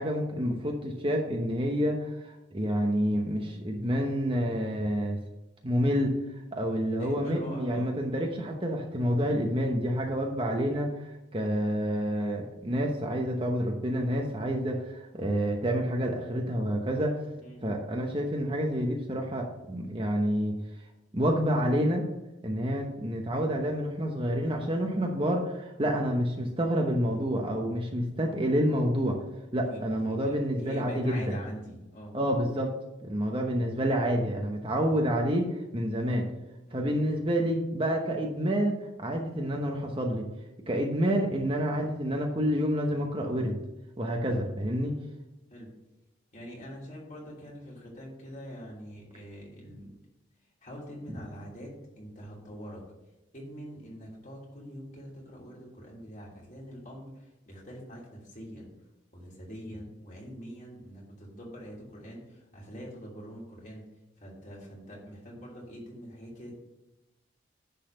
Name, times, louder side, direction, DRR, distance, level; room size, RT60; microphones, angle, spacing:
voice 1, 0.0-2.1 2.5-5.2 5.6-6.2 6.5-10.9 11.3-17.2 17.6-20.5 21.1-22.0 22.4-29.2 29.5-31.3 32.1-32.7 33.0-36.3 36.7-40.3 40.7-43.6 44.0-44.9, equal, 25° right, 1 dB, 0.9 m, -28 dB
voice 2, 6.9-7.9 17.4-17.6 29.6-32.2 36.7-36.9 44.2-44.5 45.5-45.7 46.3-49.9 50.6-52.8 53.3-58.7 59.1-63.9 64.2-66.5, equal, 40° left, -4 dB, 3.0 m, -44 dB
10.5 x 4.1 x 6.6 m, 1.0 s
head